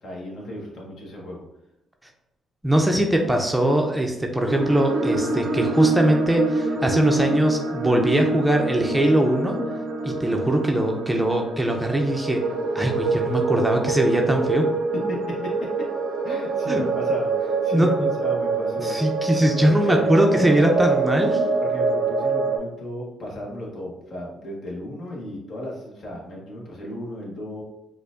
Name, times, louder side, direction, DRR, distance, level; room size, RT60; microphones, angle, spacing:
voice 1, 0.0-1.4 15.1-15.9 16.2-19.0 19.6-20.2 21.7-27.6, left 1 dB, 60° left, -2 dB, 1.2 m, -34 dB
voice 2, 2.6-9.6 10.0-12.4 12.7-14.7 16.7-16.8 17.7-18.1 18.8-21.4, right 1 dB, 10° right, 2 dB, 0.5 m, -21 dB
sound 1, 4.5-22.6, right 3 dB, 85° right, 0.5 m, -25 dB
4.4 x 2.5 x 2.5 m, 0.91 s
cardioid pair, 90°, 0 cm